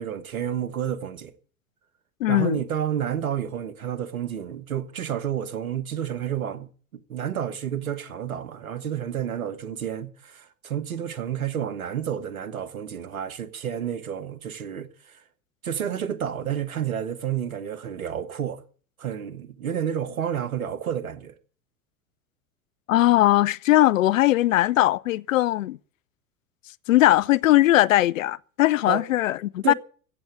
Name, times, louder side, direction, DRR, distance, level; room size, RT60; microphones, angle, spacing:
voice 1, 0.0-1.3 2.3-15.2 15.6-18.6 19.0-21.3 28.9-29.0 29.6-29.7, right 9 dB, 80° right, 1.3 m, -30 dB
voice 2, 2.2-2.6 22.9-25.8 26.9-29.7, left 15 dB, 70° left, 0.7 m, -20 dB
15.5 x 7.1 x 8.8 m
figure-of-eight pair, 80°, 42 cm